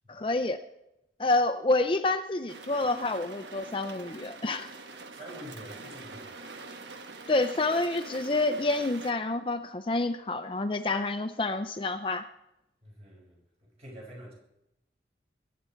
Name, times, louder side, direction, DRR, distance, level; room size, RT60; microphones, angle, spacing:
voice 1, 0.1-0.6 1.2-4.7 7.3-12.2, left 2 dB, 30° left, 8 dB, 0.5 m, -28 dB
sound 1, 2.5-9.1, right 3 dB, 85° right, 1.3 m, -44 dB
voice 2, 5.1-6.6 12.8-13.4 13.8-14.3, equal, 35° right, -3 dB, 5.6 m, -46 dB
22.0 x 9.4 x 4.5 m, 0.86 s
head